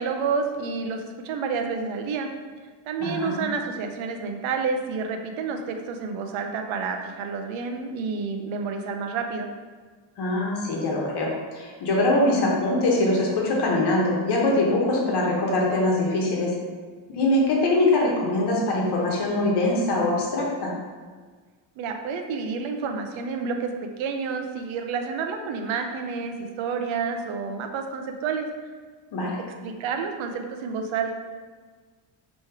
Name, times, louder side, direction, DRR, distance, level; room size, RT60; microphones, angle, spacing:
voice 1, 0.0-2.3 2.9-9.5 21.8-28.5 29.6-31.2, right 5 dB, 75° right, 5 dB, 0.6 m, -29 dB
voice 2, 3.0-3.4 10.2-16.5 17.1-20.7 29.1-29.4, left 2 dB, 55° left, -2 dB, 1.1 m, -23 dB
3.1 x 3.1 x 4.6 m, 1.5 s
cardioid pair, 130°, 48 cm